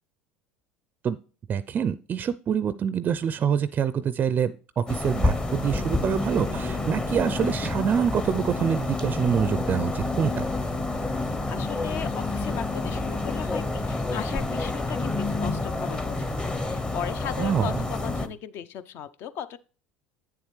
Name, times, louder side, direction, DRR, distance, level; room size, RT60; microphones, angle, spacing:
voice 1, 1.5-10.4 17.4-17.7, right 8 dB, 35° right, 16 dB, 0.4 m, -26 dB
sound 1, 4.9-18.3, left 2 dB, 20° left, 0.8 m, -28 dB
sound 2, 6.1-18.4, right 6 dB, 85° left, 3.8 m, -47 dB
voice 2, 11.5-19.6, left 9 dB, 55° left, 14 dB, 0.6 m, -37 dB
8.5 x 7.2 x 3.2 m, 0.38 s
hypercardioid pair, 75°, 5 cm